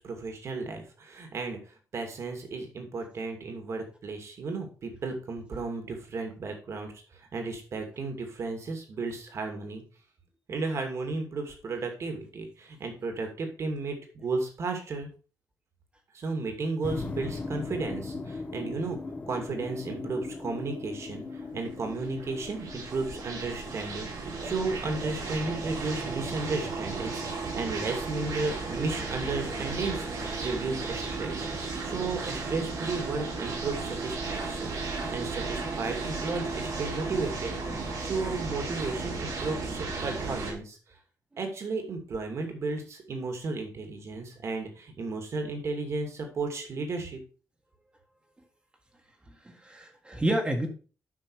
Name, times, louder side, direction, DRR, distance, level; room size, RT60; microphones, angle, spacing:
voice 1, 0.0-9.8 10.5-15.1 16.1-19.0 19.3-21.2 21.5-37.5 38.0-40.8 41.4-47.2, right 3 dB, 50° right, 4 dB, 2.5 m, -34 dB
sound 1, 16.8-23.8, left 3 dB, 25° left, 1.2 m, -38 dB
sound 2, 21.4-40.5, right 3 dB, 85° right, 4.4 m, -35 dB
voice 2, 49.3-50.7, right 1 dB, 15° right, 2 dB, 1.6 m, -30 dB
9.7 x 6.0 x 4.8 m, 0.37 s
wide cardioid pair, 170°, 6 cm